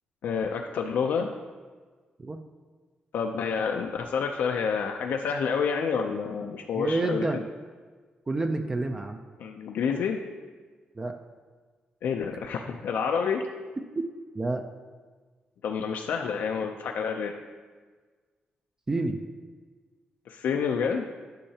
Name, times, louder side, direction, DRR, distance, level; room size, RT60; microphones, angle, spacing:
voice 1, 0.2-1.3 3.1-7.3 9.4-10.2 12.0-13.5 15.6-17.4 20.3-21.1, left 6 dB, 80° left, 2 dB, 0.5 m, -28 dB
voice 2, 6.7-7.4 8.3-9.2 11.0-11.2 14.0-14.1 14.3-14.7 18.9-19.2, right 2 dB, 20° right, 5 dB, 0.4 m, -28 dB
11.5 x 5.6 x 2.8 m, 1.4 s
wide cardioid pair, 145°, 3 cm